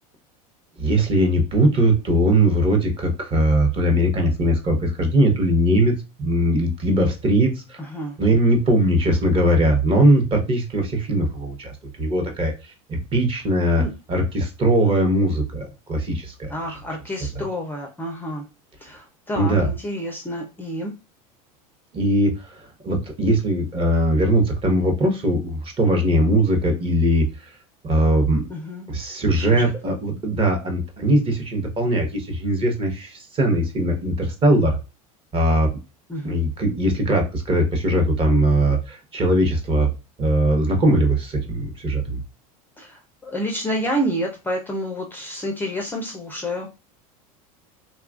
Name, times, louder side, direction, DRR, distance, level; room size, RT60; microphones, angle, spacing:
voice 1, 0.8-5.9 6.2-7.8 8.2-11.7 12.0-16.5 19.3-19.7 21.9-27.5 27.8-28.4 28.9-34.8 35.3-35.7 36.2-39.9 40.2-42.2, right 1 dB, 30° right, 3 dB, 0.8 m, -20 dB
voice 2, 7.8-8.2 13.8-13.9 16.5-18.4 18.8-20.9 28.5-28.9 29.4-29.7 36.1-36.4 42.8-46.7, equal, 10° left, 1 dB, 0.4 m, -29 dB
3.3 x 2.3 x 2.3 m, 0.30 s
supercardioid pair, 115°, 18 cm